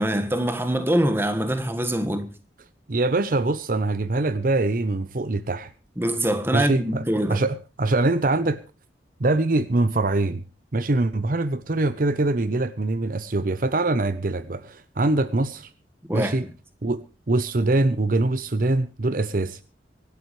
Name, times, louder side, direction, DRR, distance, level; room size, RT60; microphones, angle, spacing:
voice 1, 0.0-2.3 6.0-7.4 16.1-16.4, right 1 dB, 10° right, 1.4 m, -24 dB
voice 2, 2.9-5.7 6.5-7.0 7.3-8.6 9.2-10.4 10.7-15.7 16.1-16.4 16.8-19.6, right 2 dB, 50° right, 0.7 m, -23 dB
25.5 x 11.5 x 3.2 m
head